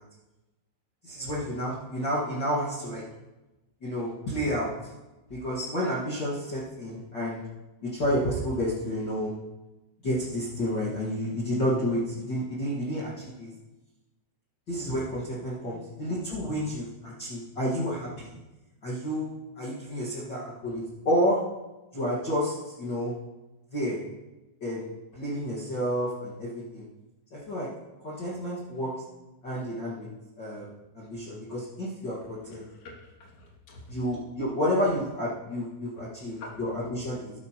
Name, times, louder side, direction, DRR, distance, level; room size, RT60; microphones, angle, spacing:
voice 1, 1.0-3.0 3.8-4.7 5.3-7.4 7.8-9.3 10.0-13.5 14.7-18.4 18.8-19.3 19.6-21.4 21.9-23.1 23.7-24.0 24.6-26.8 27.3-27.7 28.0-28.9 29.4-30.1 30.4-30.7 30.9-32.6 33.9-37.3, equal, 65° left, -7 dB, 1.1 m, -30 dB
voice 2, 32.4-33.9 36.0-36.6, left 2 dB, 45° left, -4 dB, 3.2 m, -47 dB
12.5 x 11.5 x 3.0 m, 1.0 s
omnidirectional pair, 5.2 m